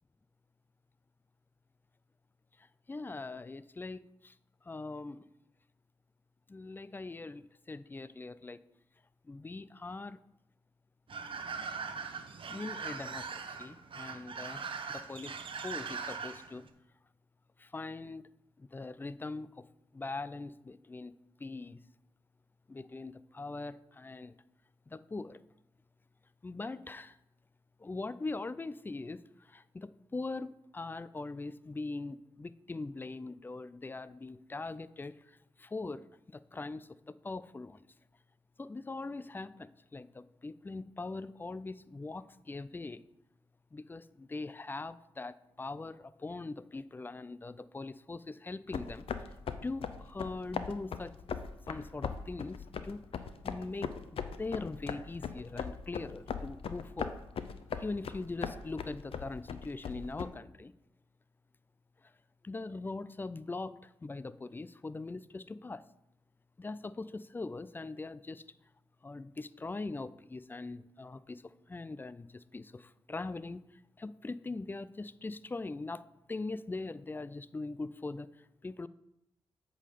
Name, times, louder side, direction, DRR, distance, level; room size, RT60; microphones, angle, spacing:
voice 1, 2.6-4.3 4.6-5.3 6.5-8.6 9.2-10.2 12.5-15.3 15.6-16.6 17.6-18.3 18.6-19.7 19.9-21.1 21.4-21.8 22.7-24.4 24.9-25.4 26.4-27.2 27.8-37.9 38.6-43.0 43.7-49.0 49.6-51.1 51.7-57.2 57.7-60.7 62.0-62.1 62.4-65.8 66.6-68.5 69.0-73.6 74.0-76.0 76.3-78.9, left 3 dB, 20° left, 16 dB, 0.4 m, -41 dB
sound 1, 11.1-16.7, right 5 dB, 60° right, 0.9 m, -41 dB
sound 2, 48.7-60.3, left 6 dB, 70° left, 0.6 m, -40 dB
8.2 x 3.8 x 6.8 m, 0.84 s
cardioid pair, 65°, 10 cm